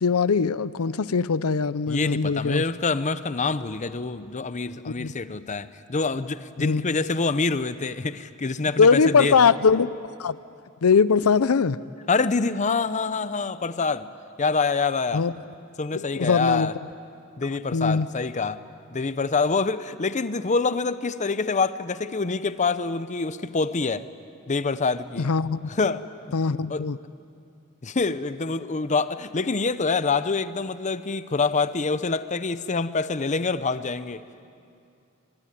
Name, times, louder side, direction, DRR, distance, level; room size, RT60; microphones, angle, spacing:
voice 1, 0.0-2.6 5.0-5.1 6.6-7.0 8.8-9.9 10.2-10.3 10.8-11.8 15.1-15.3 16.2-16.7 17.7-18.1 25.2-25.7 26.3-27.0, left 5 dB, 85° left, 16 dB, 0.6 m, -21 dB
voice 2, 1.9-9.5 12.1-14.1 14.4-15.3 15.8-16.7 17.4-18.6 18.9-24.1 24.5-25.3 25.7-26.0 26.7-26.9 27.8-34.2, left 4 dB, 35° left, 13 dB, 0.7 m, -26 dB
25.0 x 22.5 x 10.0 m, 2.4 s
head